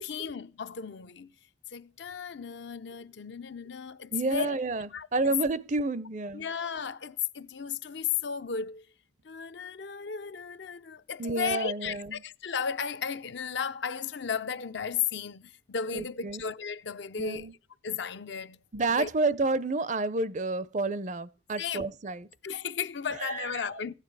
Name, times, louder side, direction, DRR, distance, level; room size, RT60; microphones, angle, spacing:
voice 1, 0.0-1.3 1.7-4.5 4.9-5.4 6.3-8.9 9.2-17.5 17.8-18.6 19.0-19.1 21.6-21.9 22.4-23.9, left 7 dB, 65° left, 0.6 m, -34 dB
voice 2, 4.1-6.5 11.2-12.2 15.9-16.4 17.2-17.5 18.7-22.3 23.2-23.6, right 3 dB, 40° right, 0.5 m, -30 dB
15.5 x 9.9 x 4.7 m
head